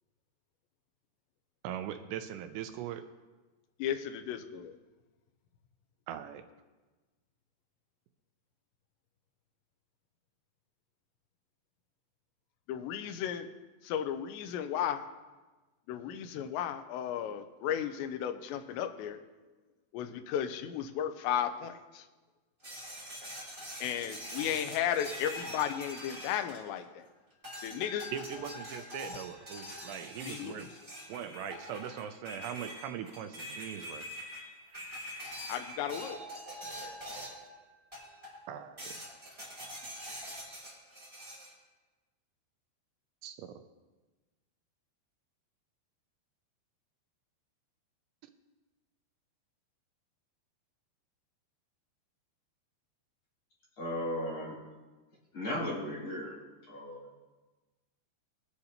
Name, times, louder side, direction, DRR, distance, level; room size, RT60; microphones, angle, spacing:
voice 1, 1.6-3.0 6.1-6.4 28.1-30.7 31.1-34.1 38.5-38.9 43.2-43.6, right 9 dB, 85° right, 8 dB, 2.7 m, -40 dB
voice 2, 3.8-4.8 12.7-13.5 13.8-15.1 15.9-19.2 19.9-22.1 23.8-27.1 27.6-28.1 30.3-30.7 35.5-36.2, left 9 dB, 90° left, 8 dB, 2.9 m, -34 dB
sound 1, 22.6-27.0 27.4-37.5 37.9-38.4 38.8-41.5, equal, 10° right, 3.3 m, -44 dB
voice 3, 53.8-54.5 55.3-56.3 56.6-57.0, left 1 dB, 30° left, -7 dB, 3.6 m, -36 dB
21.0 x 8.0 x 2.9 m, 1.2 s
omnidirectional pair, 5.0 m